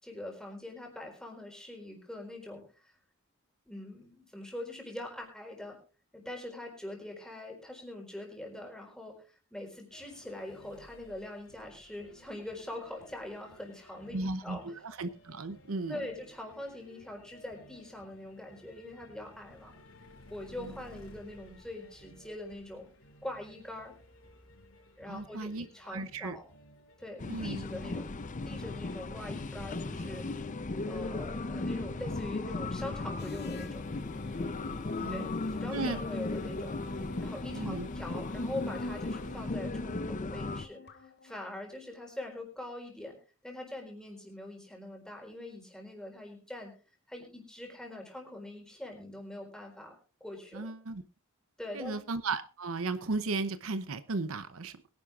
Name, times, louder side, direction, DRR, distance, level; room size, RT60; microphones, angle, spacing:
voice 1, 0.0-2.9 3.7-5.8 6.1-14.6 15.9-19.7 20.3-22.8 23.2-23.9 25.0-26.5 27.0-30.3 30.8-33.8 35.1-36.8 37.2-43.2 43.4-46.7 47.1-49.9 50.2-50.7 51.6-52.0, left 1 dB, 5° left, 1 dB, 4.3 m, -43 dB
sound 1, 9.9-27.1, equal, 70° left, 5.3 m, -57 dB
voice 2, 14.1-16.0 20.6-20.7 25.1-25.7 25.9-26.4 27.3-27.6 35.0-35.3 35.7-36.0 37.5-37.9 50.5-51.0 51.7-54.8, right 3 dB, 75° right, 12 dB, 0.8 m, -35 dB
sound 2, 27.2-40.7, left 2 dB, 35° left, 0.7 m, -36 dB
sound 3, 33.2-41.6, left 3 dB, 55° left, 1.6 m, -52 dB
22.5 x 11.0 x 2.5 m, 0.36 s
head